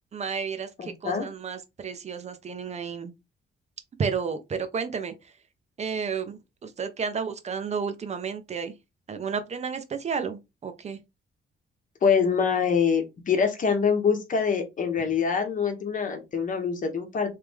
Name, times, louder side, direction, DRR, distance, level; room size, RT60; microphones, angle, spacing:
voice 1, 0.1-3.1 4.0-5.1 5.8-8.7 9.1-11.0, right 6 dB, 35° right, 0.7 m, -32 dB
voice 2, 0.8-1.3 12.0-17.3, left 6 dB, 40° left, 1.0 m, -25 dB
3.3 x 3.2 x 3.5 m
cardioid pair, 150°, 20 cm